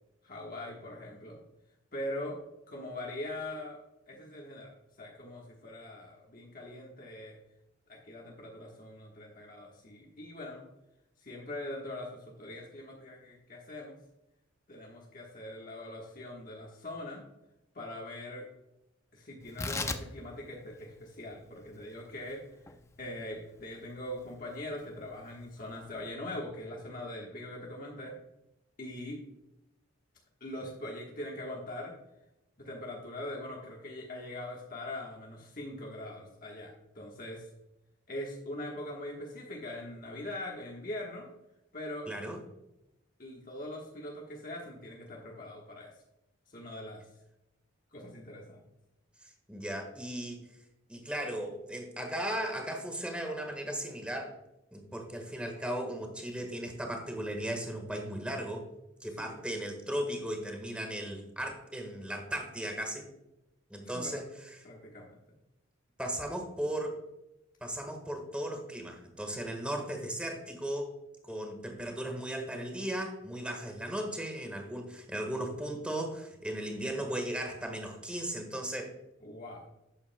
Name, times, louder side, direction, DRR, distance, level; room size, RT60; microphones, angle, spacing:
voice 1, 0.2-1.4 1.9-2.4 2.7-3.8 4.1-4.7 5.0-7.4 7.9-10.6 11.2-14.0 14.7-17.2 17.7-18.5 19.1-22.4 23.0-28.1 28.8-29.2 30.4-31.9 32.6-37.5 38.1-41.3 41.7-42.1 43.2-45.9 46.5-47.0 47.9-48.6 59.2-59.4 63.9-64.2 64.6-65.2 79.2-79.6, left 1 dB, 40° left, -2 dB, 1.3 m, -42 dB
Tearing, 19.4-26.1, left 3 dB, 15° left, 0.4 m, -42 dB
voice 2, 42.1-42.4 49.5-50.4 50.9-54.4 54.7-58.7 59.0-63.1 63.7-64.6 66.0-67.0 67.6-70.9 71.2-78.9, right 1 dB, 5° right, 3 dB, 1.4 m, -36 dB
11.5 x 8.5 x 2.2 m, 0.91 s
head